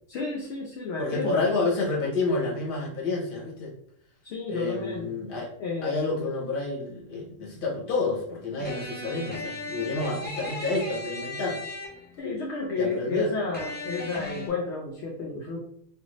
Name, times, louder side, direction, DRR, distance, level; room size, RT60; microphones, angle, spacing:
voice 1, 0.1-1.5 4.2-5.2 5.6-6.1 12.2-15.6, left 3 dB, 65° left, 0 dB, 0.8 m, -31 dB
voice 2, 1.0-3.7 4.5-5.5 5.8-11.6 12.8-13.3, left 3 dB, 45° left, -3 dB, 1.0 m, -29 dB
sound 1, 8.6-12.3 13.5-14.5, left 2 dB, 15° left, 0.3 m, -37 dB
2.5 x 2.5 x 3.0 m, 0.68 s
omnidirectional pair, 1.4 m